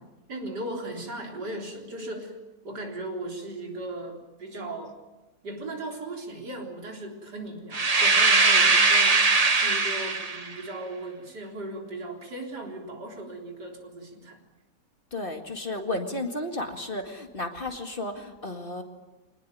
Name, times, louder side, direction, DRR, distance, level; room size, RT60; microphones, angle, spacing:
voice 1, 0.3-2.4 2.6-5.0 5.4-14.4, right 1 dB, 80° right, 1 dB, 4.5 m, -37 dB
sound 1, 7.7-10.5, right 3 dB, 25° right, 1.1 m, -20 dB
voice 2, 15.1-18.8, left 2 dB, 30° left, 4 dB, 2.2 m, -33 dB
25.5 x 19.5 x 9.3 m, 1.1 s
omnidirectional pair, 1.8 m